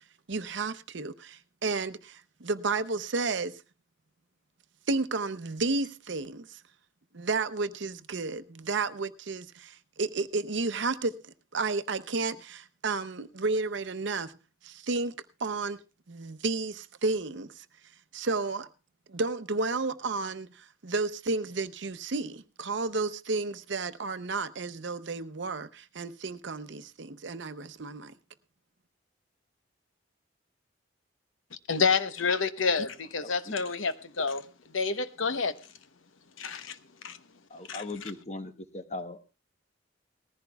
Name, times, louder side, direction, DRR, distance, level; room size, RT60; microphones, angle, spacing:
voice 1, 0.3-3.5 4.9-6.6 7.1-14.3 14.6-15.8 16.1-17.7 18.1-18.7 19.1-28.1, right 3 dB, 70° right, 0.7 m, -32 dB
voice 2, 31.7-34.4 34.7-35.5 36.4-36.8 37.0-37.2 37.7-37.8, left 5 dB, 85° left, 0.9 m, -28 dB
voice 3, 33.2-33.5 37.5-39.2, left 2 dB, 35° left, 1.0 m, -39 dB
19.5 x 14.5 x 2.3 m
head